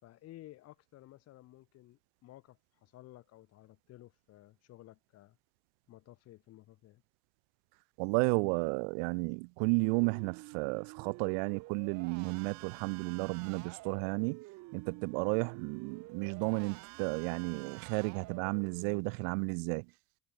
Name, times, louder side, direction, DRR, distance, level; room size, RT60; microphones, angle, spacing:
voice 1, 0.0-5.4 5.9-7.0, left 15 dB, 55° left, 6.3 m, -55 dB
voice 2, 8.0-14.4 14.7-19.9, right 39 dB, 90° right, 1.4 m, -33 dB
sound 1, 9.8-19.0, right 22 dB, 70° right, 5.5 m, -50 dB
cardioid pair, 130°, 29 cm